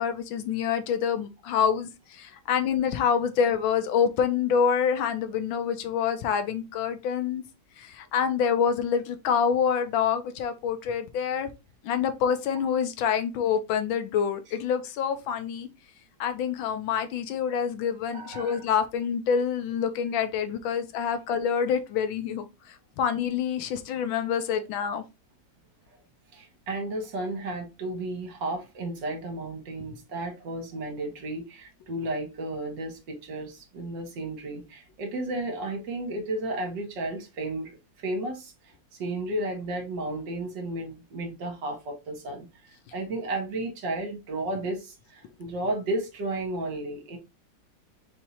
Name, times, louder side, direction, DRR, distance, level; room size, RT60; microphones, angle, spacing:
voice 1, 0.0-7.4 7.8-11.5 11.8-15.7 16.2-25.0, left 7 dB, 75° left, 1.4 m, -27 dB
voice 2, 18.1-18.6 26.3-37.7 38.0-38.5 39.0-42.5 42.9-47.2, right 2 dB, 65° right, 1.8 m, -33 dB
4.3 x 2.7 x 4.1 m
omnidirectional pair, 2.2 m